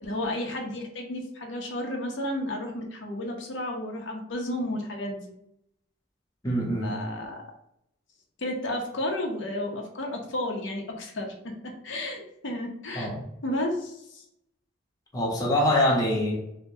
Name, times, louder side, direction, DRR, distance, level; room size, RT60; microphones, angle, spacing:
voice 1, 0.0-5.3 6.8-7.4 8.4-11.3 11.8-13.1 13.4-14.2, left 1 dB, 80° left, 1 dB, 0.7 m, -32 dB
voice 2, 6.4-7.0 12.9-13.2 15.1-16.4, left 1 dB, 20° left, -3 dB, 0.9 m, -24 dB
4.6 x 2.2 x 2.7 m, 0.75 s
head